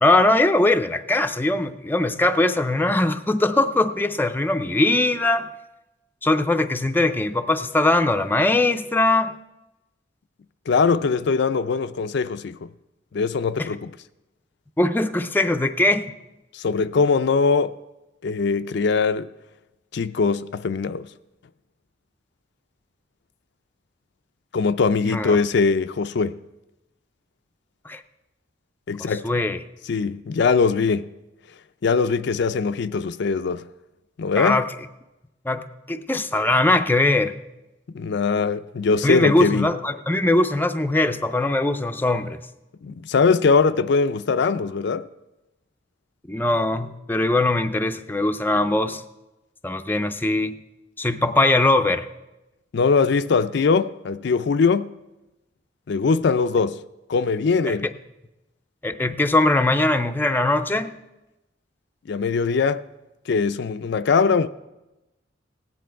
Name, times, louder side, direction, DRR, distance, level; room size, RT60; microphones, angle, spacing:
voice 1, 0.0-5.5 6.2-9.3 13.6-13.7 14.8-16.1 25.1-25.4 27.9-28.0 29.2-29.6 34.4-34.7 35.5-37.3 39.0-42.4 46.3-49.0 49.6-50.6 51.0-52.1 57.7-57.8 58.8-60.9, left 2 dB, 10° left, 0.5 m, -21 dB
voice 2, 10.7-12.7 13.1-13.9 16.5-17.8 18.2-19.3 19.9-21.1 24.5-26.4 28.9-29.3 29.9-31.1 31.8-33.7 34.2-34.6 37.9-39.7 42.8-45.1 52.7-54.9 55.9-56.8 57.1-57.9 62.1-62.8 63.3-64.5, left 4 dB, 65° left, 0.4 m, -21 dB
16.5 x 10.0 x 4.6 m
head